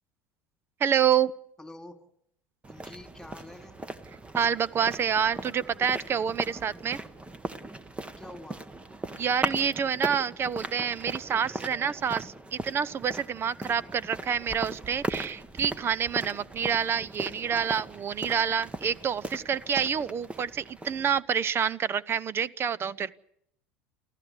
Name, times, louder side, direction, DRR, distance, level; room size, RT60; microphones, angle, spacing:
voice 1, 0.8-1.3 4.3-7.0 9.2-23.1, right 7 dB, 35° right, 22 dB, 0.8 m, -28 dB
voice 2, 1.6-2.0 2.7-3.7 8.2-8.6 13.6-13.9, left 1 dB, 5° left, 6 dB, 3.2 m, -46 dB
sound 1, 2.6-21.2, right 2 dB, 15° right, 1.4 m, -38 dB
28.0 x 14.5 x 8.3 m, 0.73 s
hypercardioid pair, 75°, 7 cm